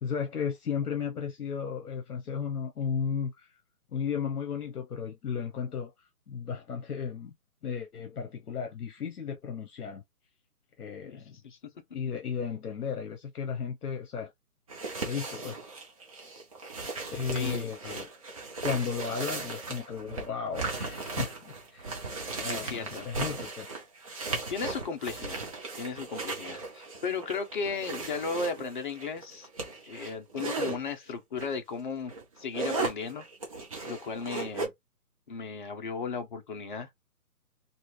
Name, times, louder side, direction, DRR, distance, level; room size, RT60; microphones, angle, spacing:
voice 1, 0.0-3.5 3.9-5.9 6.3-7.3 7.6-10.0 10.8-11.4 11.9-14.3 15.1-15.6 17.1-18.1 18.6-22.1 22.3-23.8, left 6 dB, 75° left, 0.8 m, -34 dB
voice 2, 11.0-11.6 17.3-17.7 22.4-23.1 24.5-25.4 25.7-29.5 29.9-32.1 32.4-33.2 33.9-34.7 35.3-36.9, left 5 dB, 35° left, 0.7 m, -35 dB
sound 1, 14.7-30.8 31.4-31.6 32.0-34.7, right 3 dB, 25° right, 0.6 m, -36 dB
2.7 x 2.5 x 3.1 m
figure-of-eight pair, 140°, 46 cm